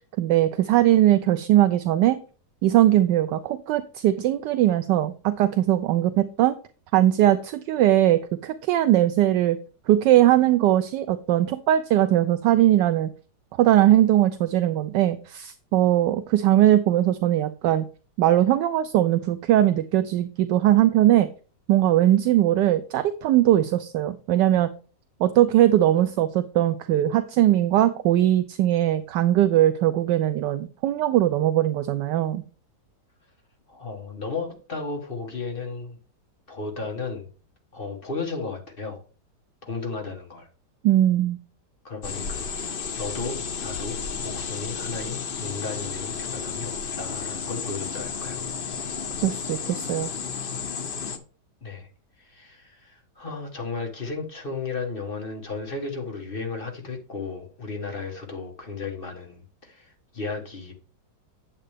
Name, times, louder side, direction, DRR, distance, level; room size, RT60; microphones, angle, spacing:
voice 1, 0.2-2.2 2.6-6.6 6.9-9.6 9.9-13.1 13.6-17.8 18.2-21.3 21.7-24.7 25.2-32.4 40.8-41.4 49.2-50.1, right 13 dB, 75° right, 11 dB, 1.2 m, -20 dB
voice 2, 33.7-36.0 36.5-37.3 37.7-39.0 39.6-40.5 41.8-48.4 51.6-51.9 52.2-60.7, left 4 dB, 30° left, 2 dB, 1.4 m, -34 dB
sound 1, 42.0-51.2, left 6 dB, 70° left, 0.5 m, -32 dB
8.7 x 7.6 x 3.4 m, 0.37 s
omnidirectional pair, 2.0 m